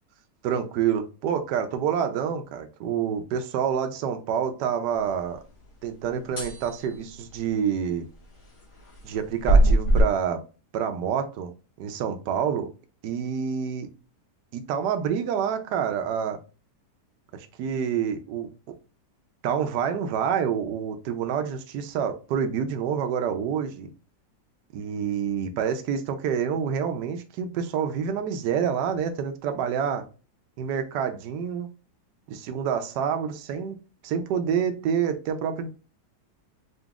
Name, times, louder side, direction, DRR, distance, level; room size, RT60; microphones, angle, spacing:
voice 1, 0.4-5.4 5.8-8.0 9.0-10.4 10.7-11.5 11.8-12.7 13.0-13.9 14.5-16.4 17.3-18.5 19.4-23.9 24.7-30.1 30.6-31.7 32.3-33.8 34.0-35.7, right 7 dB, 75° right, 1.2 m, -27 dB
sound 1, 6.4-6.7 9.5-10.0, right 2 dB, 20° left, 1.1 m, -18 dB
4.0 x 2.9 x 3.5 m
omnidirectional pair, 1.9 m